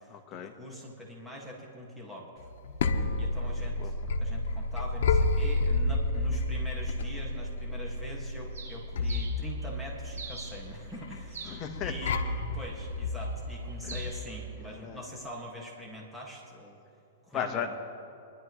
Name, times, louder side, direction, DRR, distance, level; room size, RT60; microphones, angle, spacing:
voice 1, 0.1-0.5 3.4-3.5 3.8-3.9 9.0-9.2 11.4-12.0 13.8-14.1 14.6-15.0 17.3-17.7, left 8 dB, 30° left, 4 dB, 1.2 m, -37 dB
voice 2, 0.6-2.5 3.1-11.5 11.8-12.2 12.5-16.8 17.2-17.7, equal, 5° right, -3 dB, 1.9 m, -43 dB
sound 1, 2.4-14.3, left 2 dB, 70° left, 1.1 m, -31 dB
Bird, 8.5-15.2, right 4 dB, 85° right, 3.1 m, -48 dB
24.5 x 11.5 x 3.2 m, 2.8 s
hypercardioid pair, 145°, 0 cm